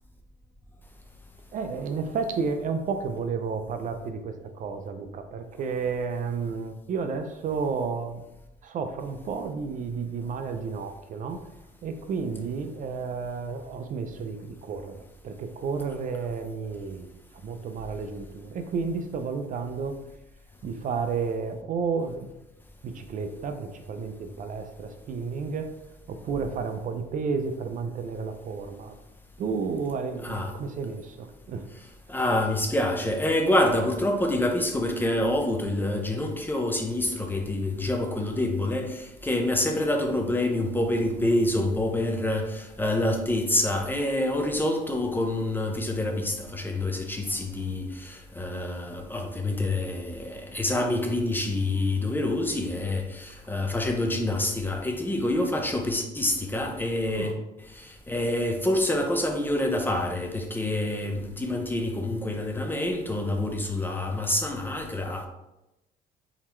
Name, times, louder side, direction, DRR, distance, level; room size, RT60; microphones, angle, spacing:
voice 1, 1.5-8.2 8.6-11.5 11.8-17.1 17.4-20.0 20.6-22.3 22.8-25.8 26.1-28.9 29.4-31.7 32.1-32.2 57.1-57.4, right 5 dB, 50° right, 0.5 m, -32 dB
voice 2, 32.1-57.3 57.7-65.3, left 1 dB, 10° left, 0.6 m, -27 dB
4.2 x 4.0 x 3.1 m
cardioid pair, 110°, 17 cm